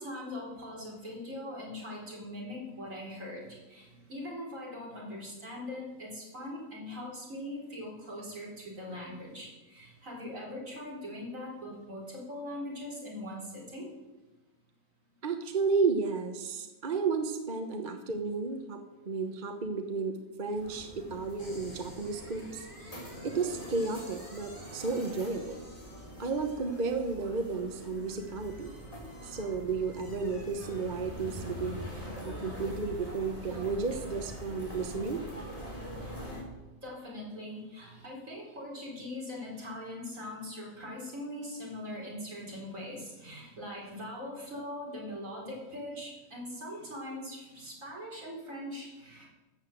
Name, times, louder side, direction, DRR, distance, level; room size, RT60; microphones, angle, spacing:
voice 1, 0.0-13.9 36.8-49.3, left 1 dB, 55° right, -4 dB, 4.6 m, -41 dB
voice 2, 15.2-25.6 26.2-28.7 29.2-31.8 32.2-35.2, right 4 dB, 35° right, 6 dB, 0.9 m, -33 dB
sound 1, 20.6-36.4, equal, 20° left, 3.9 m, -44 dB
sound 2, 21.4-31.3, equal, 70° left, 5.9 m, -53 dB
13.0 x 8.1 x 7.8 m, 1.1 s
omnidirectional pair, 1.7 m